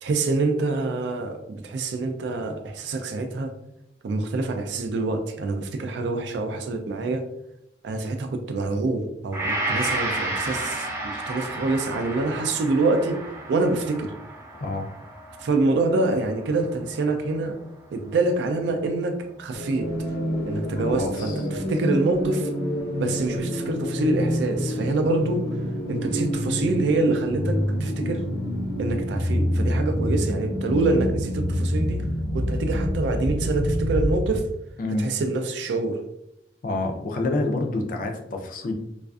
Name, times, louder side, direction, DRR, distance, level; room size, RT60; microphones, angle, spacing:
voice 1, 0.0-3.5 4.0-7.2 7.8-13.2 13.5-14.1 15.4-17.6 17.9-19.9 20.5-22.5 23.0-25.5 25.9-28.2 28.8-32.0 32.3-34.5 35.0-36.0, right 3 dB, 75° right, 6 dB, 0.3 m, -26 dB
Gong, 9.3-17.6 18.1-18.2, right 2 dB, 15° right, 0.5 m, -32 dB
voice 2, 14.6-14.9 20.8-21.4 34.8-35.0 36.6-38.7, left 2 dB, 50° left, 3 dB, 0.4 m, -27 dB
sound 1, 19.5-34.5, equal, 75° left, 0.9 m, -27 dB
2.4 x 2.4 x 2.3 m, 0.80 s
head